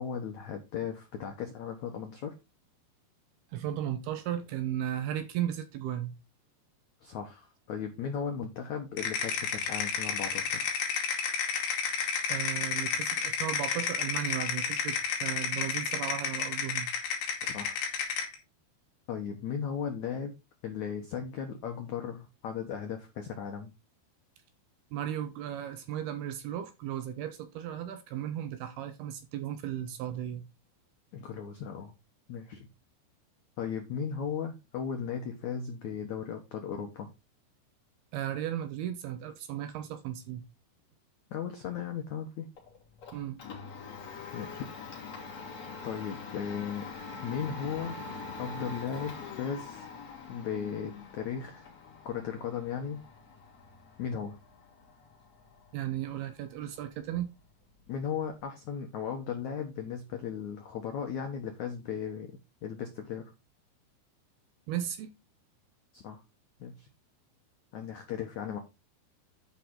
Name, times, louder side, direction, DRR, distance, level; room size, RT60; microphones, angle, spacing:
voice 1, 0.0-2.3 7.0-10.7 17.4-17.8 19.1-20.3 20.6-23.7 31.1-31.9 32.3-32.7 33.6-37.1 41.3-42.5 44.3-44.7 45.8-46.9 47.2-48.0 48.4-49.9 50.3-51.7 52.0-53.0 54.0-54.4 57.9-63.2 65.9-66.2 66.6-66.9 67.7-68.6, left 7 dB, 85° left, 1.6 m, -36 dB
voice 2, 3.5-6.1 12.3-16.9 24.9-30.4 38.1-40.4 43.1-43.4 55.7-57.3 64.7-65.1, right 11 dB, 75° right, 2.5 m, -35 dB
sound 1, 9.0-18.4, left 6 dB, 65° left, 4.2 m, -31 dB
Domestic sounds home sounds, 42.6-58.4, left 4 dB, 40° left, 4.0 m, -45 dB
11.5 x 5.6 x 3.9 m
omnidirectional pair, 5.3 m